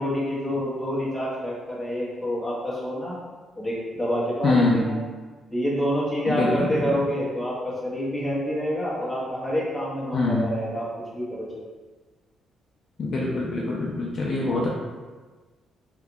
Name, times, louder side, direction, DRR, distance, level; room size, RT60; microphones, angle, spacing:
voice 1, 0.0-3.2 3.5-5.0 5.5-10.8 11.1-11.5, equal, 5° left, -8 dB, 1.2 m, -27 dB
voice 2, 4.4-4.9 6.3-6.9 10.1-10.5 13.0-14.7, left 2 dB, 50° left, -3 dB, 0.5 m, -24 dB
3.4 x 2.9 x 2.3 m, 1.3 s
cardioid pair, 90°, 0 cm